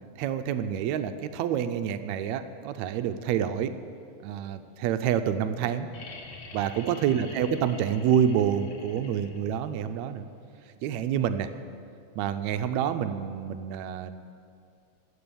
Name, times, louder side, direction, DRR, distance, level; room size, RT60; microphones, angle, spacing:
voice 1, 0.2-3.8 4.2-5.9 6.5-10.3 10.8-11.5 12.1-14.2, right 9 dB, 85° right, 10 dB, 1.6 m, -28 dB
sound 1, 5.9-9.7 11.4-11.5, left 3 dB, 55° left, 1.4 m, -45 dB
14.5 x 9.0 x 6.9 m, 2.3 s
omnidirectional pair, 3.7 m